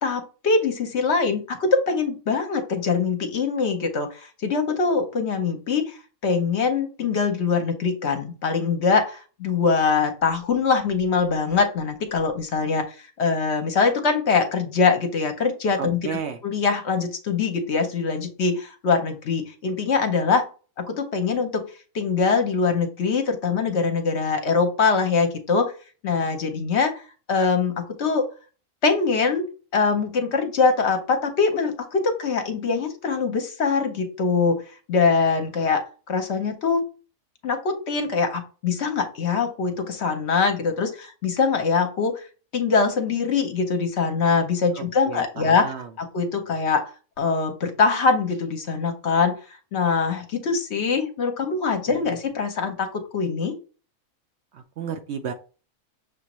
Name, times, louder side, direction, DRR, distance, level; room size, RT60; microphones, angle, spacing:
voice 1, 0.0-6.0 6.2-16.2 16.4-20.4 20.8-21.6 21.9-25.7 26.0-27.0 27.3-28.3 28.8-34.6 34.9-35.8 36.1-36.8 37.4-42.3 42.5-46.9 47.2-49.4 49.7-53.6, left 5 dB, 60° left, 6 dB, 1.0 m, -23 dB
voice 2, 15.8-16.4 44.8-45.9 51.9-52.1 54.5-55.3, right 7 dB, 65° right, 6 dB, 0.8 m, -33 dB
6.5 x 2.5 x 3.0 m, 0.34 s
omnidirectional pair, 1.4 m